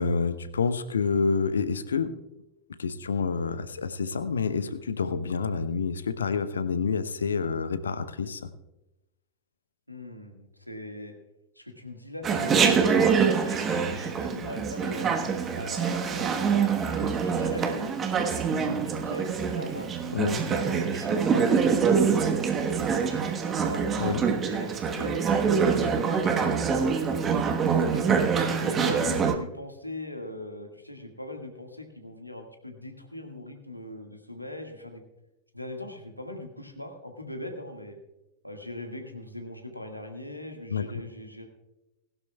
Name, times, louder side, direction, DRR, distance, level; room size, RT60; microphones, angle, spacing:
voice 1, 0.0-2.2 2.8-8.5 20.1-20.4 24.0-24.2 40.7-40.8, left 5 dB, 70° left, 13 dB, 0.8 m, -28 dB
voice 2, 9.9-11.1 11.6-12.9 13.4-15.1 15.5-17.9 18.5-19.9 20.2-23.9 24.4-27.1 27.7-35.0 35.5-38.0 38.4-41.5, left 1 dB, 90° left, 4 dB, 1.7 m, -40 dB
Chatter, 12.2-29.3, right 6 dB, 25° right, 1.2 m, -25 dB
19.5 x 12.0 x 2.3 m, 0.95 s
figure-of-eight pair, 90°, 0 cm